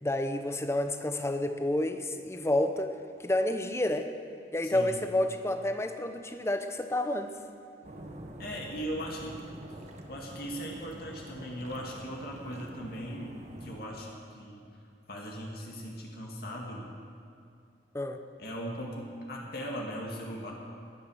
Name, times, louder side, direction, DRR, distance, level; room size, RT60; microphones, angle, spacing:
voice 1, 0.0-2.9 3.2-4.1 4.5-7.3 17.9-18.2, left 1 dB, 15° left, 7 dB, 0.9 m, -29 dB
sound 1, 7.8-13.8, right 1 dB, 40° right, 1.3 m, -46 dB
voice 2, 8.4-9.4 10.1-14.6 15.1-16.9 18.4-20.5, equal, 60° left, -1 dB, 2.2 m, -39 dB
20.5 x 9.4 x 6.5 m, 2.5 s
head